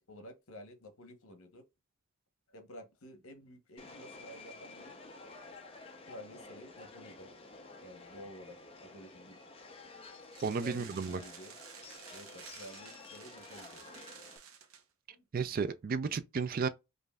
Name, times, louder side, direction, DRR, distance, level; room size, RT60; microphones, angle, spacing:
voice 1, 0.1-1.6 2.5-5.0 6.1-7.3 7.8-9.4 10.6-11.5 12.1-13.8 15.1-15.2, left 1 dB, 75° left, 0.9 m, -51 dB
Subway metro underground, 3.8-14.4, left 3 dB, 25° left, 0.6 m, -52 dB
sound 1, 10.3-14.8, right 7 dB, 80° right, 0.7 m, -53 dB
voice 2, 10.4-11.2 15.3-16.7, right 5 dB, 40° right, 0.3 m, -33 dB
5.1 x 2.6 x 2.2 m
head